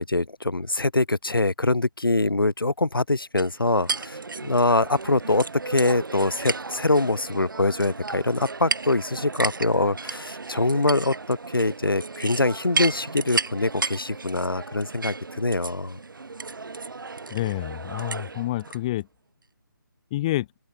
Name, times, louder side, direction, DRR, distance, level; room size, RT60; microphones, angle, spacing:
voice 1, 0.0-16.0, left 2 dB, 90° left, 2.9 m, -24 dB
sound 1, 3.4-18.8, right 4 dB, 70° right, 1.4 m, -33 dB
voice 2, 17.3-19.1 20.1-20.5, left 16 dB, 15° left, 0.7 m, -28 dB
open air
figure-of-eight pair, 160°, 11 cm